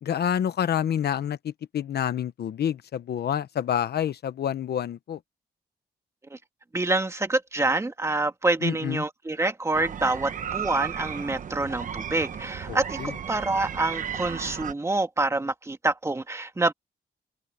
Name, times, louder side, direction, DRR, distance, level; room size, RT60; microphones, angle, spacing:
voice 1, 0.0-5.2 8.6-9.0 12.7-13.1, left 9 dB, 75° left, 1.0 m, -28 dB
voice 2, 6.7-13.0 13.3-16.7, right 2 dB, 15° right, 2.0 m, -26 dB
sound 1, 9.7-14.7, right 8 dB, 50° right, 0.9 m, -34 dB
open air
wide cardioid pair, 170°, 17 cm